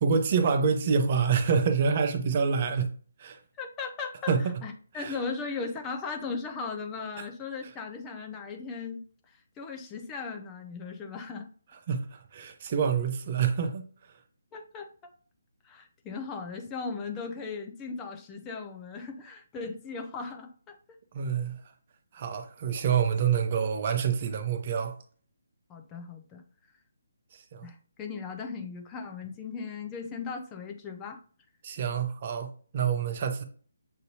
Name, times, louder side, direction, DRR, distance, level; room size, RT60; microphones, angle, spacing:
voice 1, 0.0-2.9 3.2-3.4 4.3-4.4 4.9-5.2 11.9-13.8 21.1-21.6 22.1-24.9 27.3-27.7 31.6-33.4, right 6 dB, 40° right, 0.6 m, -27 dB
voice 2, 3.6-4.3 4.6-9.0 9.3-11.5 14.5-14.9 15.6-21.0 25.7-26.4 27.6-31.2, left 4 dB, 15° left, 0.6 m, -37 dB
6.5 x 2.6 x 2.7 m
figure-of-eight pair, 150°, 0 cm